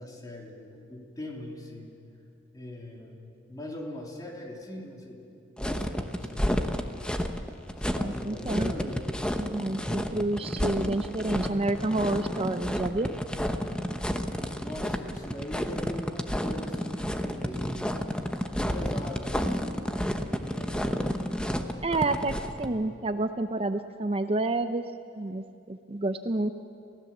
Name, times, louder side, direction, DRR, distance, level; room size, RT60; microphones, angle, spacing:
voice 1, 0.0-1.9 2.5-3.2 3.5-5.3 5.6-6.8 7.8-9.1 14.6-17.9 18.5-19.5 20.1-21.1 22.0-22.5, left 1 dB, 20° left, -1 dB, 3.2 m, -41 dB
sound 1, 5.6-22.7, equal, 5° left, 1.0 m, -30 dB
voice 2, 8.0-8.9 9.4-13.1 21.8-24.8 25.2-26.5, right 2 dB, 35° right, 9 dB, 0.6 m, -29 dB
29.0 x 16.0 x 7.3 m, 2.5 s
head